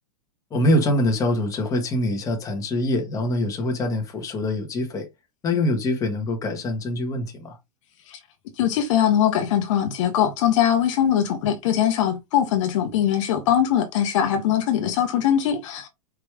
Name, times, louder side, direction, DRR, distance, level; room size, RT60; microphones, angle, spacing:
voice 1, 0.5-5.1 5.4-7.6, left 1 dB, 15° left, 1.4 m, -24 dB
voice 2, 8.6-15.9, left 10 dB, 55° left, 1.0 m, -21 dB
4.9 x 3.0 x 3.4 m
supercardioid pair, 155°, 19 cm